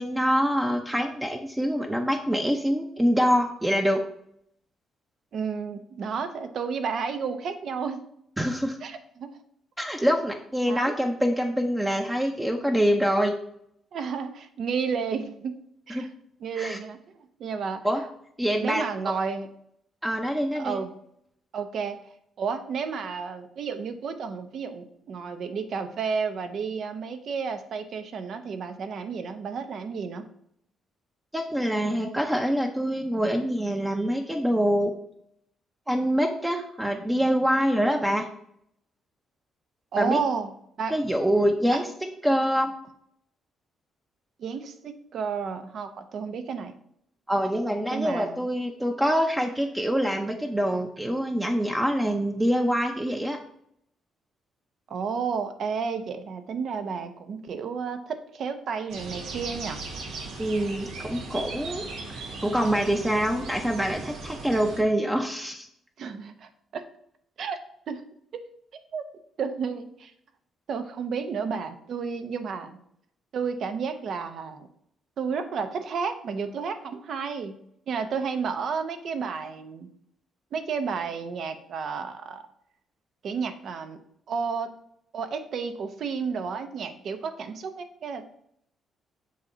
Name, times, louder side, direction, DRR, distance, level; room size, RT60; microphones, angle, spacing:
voice 1, 0.0-4.0 8.4-8.8 9.8-13.3 15.9-16.1 16.6-16.8 17.8-18.0 18.4-19.1 20.0-20.8 31.3-34.9 35.9-38.3 40.0-40.2 40.9-41.9 42.2-42.7 47.3-53.4 60.4-61.8 62.1-65.7, equal, 10° right, 2 dB, 0.7 m, -25 dB
voice 2, 5.3-8.0 8.8-9.4 10.7-10.9 13.9-15.6 15.9-16.1 16.4-18.0 18.5-19.5 20.5-20.9 21.5-22.0 22.4-30.3 39.9-40.5 40.8-40.9 41.7-41.8 44.4-46.7 47.9-48.5 54.9-59.8 66.0-66.9 67.4-67.6 67.9-68.0 68.3-68.4 68.9-69.0 69.4-70.1 70.7-72.8 73.3-74.7 75.2-77.5 77.9-79.9 80.5-82.4 83.2-84.0 84.3-84.7 85.1-88.3, right 5 dB, 65° right, 8 dB, 0.7 m, -31 dB
sound 1, 58.9-64.8, right 3 dB, 80° right, 1.3 m, -38 dB
7.5 x 2.9 x 5.4 m, 0.71 s
cardioid pair, 90°, 0 cm